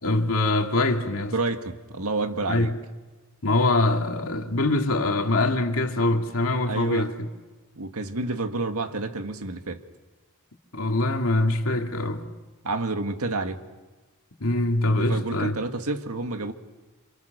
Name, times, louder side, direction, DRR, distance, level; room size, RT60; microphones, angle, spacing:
voice 1, 0.0-1.3 2.5-2.7 3.4-7.3 10.7-12.3 14.4-15.6, left 2 dB, 70° left, 2.4 m, -23 dB
voice 2, 1.3-2.7 6.6-7.1 7.8-9.8 12.6-13.6 15.0-16.5, right 3 dB, 85° right, 1.8 m, -29 dB
28.0 x 27.5 x 6.7 m
head